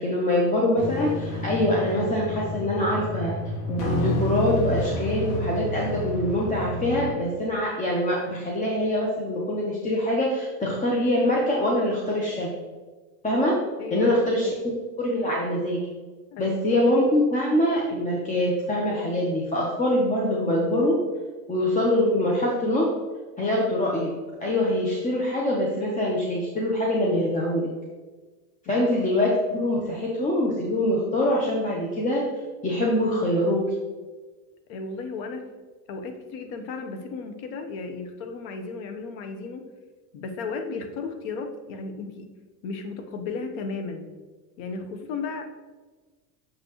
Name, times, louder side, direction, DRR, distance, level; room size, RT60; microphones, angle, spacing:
voice 1, 0.0-3.3 3.7-12.5 13.2-13.6 13.9-14.5 15.0-15.8 16.4-21.0 21.5-22.9 23.4-24.1 24.4-27.7 28.7-32.2 32.6-33.7, left 1 dB, 20° left, -3 dB, 0.8 m, -24 dB
sound 1, 0.8-7.1, left 1 dB, 45° left, 1.4 m, -30 dB
voice 2, 13.8-14.5 16.3-16.6 28.7-28.9 34.7-35.5 35.9-39.7 40.1-42.3 42.6-44.1 44.6-45.5, left 4 dB, 75° left, 7 dB, 1.0 m, -34 dB
6.8 x 5.6 x 3.0 m, 1.3 s
supercardioid pair, 135°, 43 cm